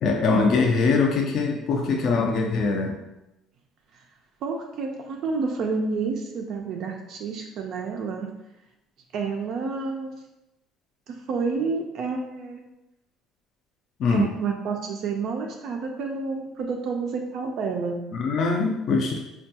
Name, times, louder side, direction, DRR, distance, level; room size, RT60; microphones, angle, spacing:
voice 1, 0.0-2.9 14.0-14.3 18.1-19.2, left 4 dB, 40° left, 1 dB, 0.4 m, -22 dB
voice 2, 4.4-8.3 9.1-10.1 11.1-12.6 14.1-18.0, right 4 dB, 45° right, 2 dB, 0.3 m, -29 dB
4.4 x 2.2 x 2.8 m, 0.92 s
cardioid pair, 170°, 0 cm